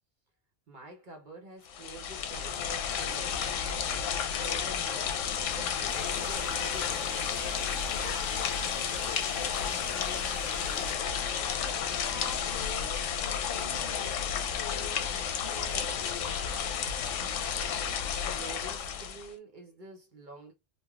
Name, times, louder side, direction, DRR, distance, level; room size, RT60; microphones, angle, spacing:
voice 1, 0.7-3.6 4.3-7.1 18.2-20.5, right 2 dB, 45° right, 0.8 m, -48 dB
sound 1, 1.7-19.3, left 7 dB, 85° left, 0.9 m, -32 dB
sound 2, 5.9-10.9, left 1 dB, 30° left, 1.3 m, -45 dB
voice 2, 7.8-11.1 11.7-16.4, left 5 dB, 60° left, 0.8 m, -47 dB
3.3 x 2.2 x 2.2 m
omnidirectional pair, 1.3 m